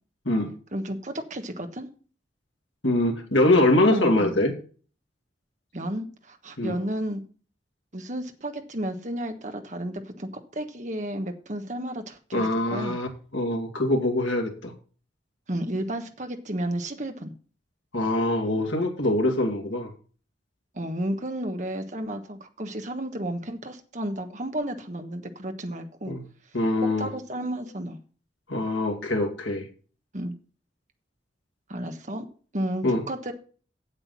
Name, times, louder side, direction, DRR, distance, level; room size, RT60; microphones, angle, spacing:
voice 1, 0.7-1.9 3.8-4.4 5.7-7.2 7.9-12.9 15.5-17.3 20.7-26.1 27.0-28.0 30.1-30.3 31.7-32.3 32.5-33.3, right 1 dB, 40° right, 6 dB, 1.3 m, -32 dB
voice 2, 2.8-4.5 6.6-6.7 12.3-14.7 17.9-19.9 26.1-26.2 26.5-27.1 28.5-29.6 32.8-33.0, left 1 dB, 85° left, 1 dB, 2.3 m, -23 dB
8.2 x 7.9 x 5.7 m, 0.39 s
head